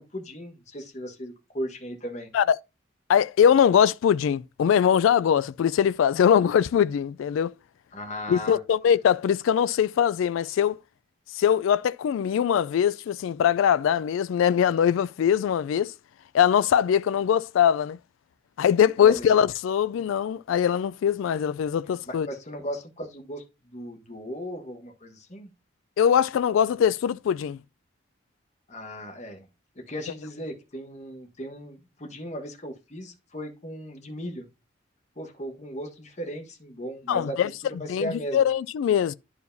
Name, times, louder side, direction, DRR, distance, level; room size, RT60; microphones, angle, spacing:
voice 1, 0.0-2.3 7.9-8.6 19.0-19.5 22.1-25.5 28.7-29.5 29.7-34.5 35.2-37.4 37.8-38.4, equal, 35° left, 1.3 m, -37 dB
voice 2, 3.1-7.5 8.3-10.8 11.3-15.9 16.3-18.0 18.6-22.3 26.0-27.6 37.1-37.5 37.9-39.1, left 8 dB, 80° left, 0.3 m, -22 dB
11.0 x 4.8 x 2.7 m
head